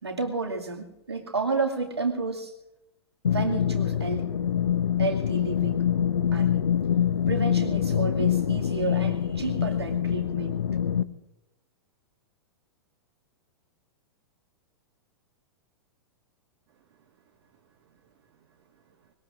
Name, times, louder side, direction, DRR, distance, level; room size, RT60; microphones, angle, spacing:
voice 1, 0.0-2.5 3.3-4.3 5.0-5.8 6.3-6.6 7.3-10.6, right 4 dB, 75° right, 1 dB, 2.4 m, -31 dB
sound 1, 3.2-11.0, left 9 dB, 70° left, 0.7 m, -25 dB
voice 2, 16.7-19.1, right 7 dB, 45° right, 3 dB, 1.8 m, -65 dB
25.0 x 21.0 x 2.6 m, 0.93 s
figure-of-eight pair, 100°, 14 cm